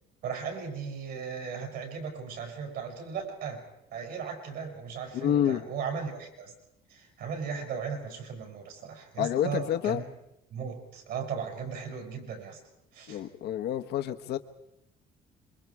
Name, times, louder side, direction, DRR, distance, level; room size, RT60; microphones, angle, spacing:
voice 1, 0.2-3.6 3.9-6.5 6.9-10.0 10.5-12.6 12.9-13.2, right 6 dB, 75° right, 6.7 m, -37 dB
voice 2, 5.1-5.7 9.2-10.0 13.1-14.4, left 10 dB, 75° left, 1.2 m, -28 dB
27.0 x 23.5 x 4.8 m
cardioid pair, 110°, 17 cm